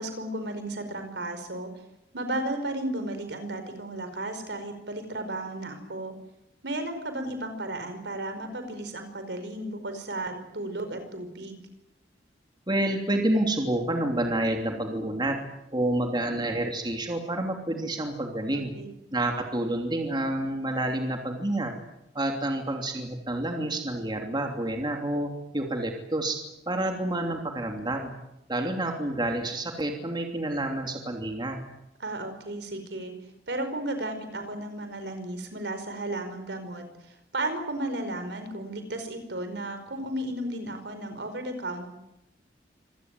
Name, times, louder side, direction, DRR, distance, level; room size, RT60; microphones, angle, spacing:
voice 1, 0.0-1.7 2.1-6.1 6.6-11.6 18.5-18.9 32.0-33.1 33.5-36.8 37.3-41.9, right 1 dB, 70° right, 8 dB, 5.0 m, -34 dB
voice 2, 12.7-15.4 15.7-18.7 19.1-21.7 22.1-26.4 26.7-28.1 28.5-31.6, right 1 dB, 25° right, 3 dB, 3.0 m, -28 dB
26.0 x 18.0 x 9.3 m, 0.86 s
head